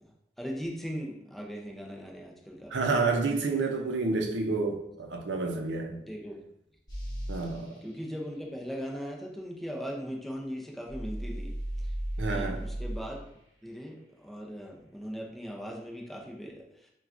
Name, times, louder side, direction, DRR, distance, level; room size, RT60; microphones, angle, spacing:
voice 1, 0.4-3.1 6.1-6.4 7.8-11.5 12.3-13.2 13.6-14.0 14.2-16.6, equal, ahead, -2 dB, 0.5 m, -39 dB
voice 2, 2.7-6.0 7.3-7.7 12.2-12.6, right 3 dB, 85° right, 3 dB, 0.6 m, -29 dB
sound 1, 6.9-7.4 10.9-13.0, right 1 dB, 25° left, 1.2 m, -34 dB
6.0 x 2.3 x 2.5 m, 0.79 s
head